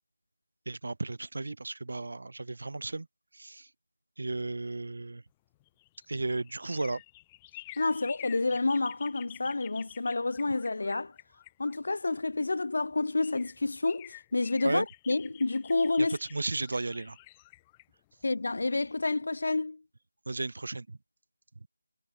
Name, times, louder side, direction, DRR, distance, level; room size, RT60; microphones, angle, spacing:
voice 1, 0.7-3.1 3.3-3.7 4.2-5.2 6.1-7.0 14.6-14.9 16.0-16.1 16.3-17.2 20.3-21.0, right 2 dB, 60° right, 2.0 m, -34 dB
sound 1, 5.5-12.4 12.9-13.0 13.2-19.0 19.3-19.4, left 18 dB, 10° left, 4.7 m, -51 dB
voice 2, 7.8-11.1 11.6-16.2 18.2-19.8, left 3 dB, 55° left, 3.6 m, -29 dB
figure-of-eight pair, 170°, 0 cm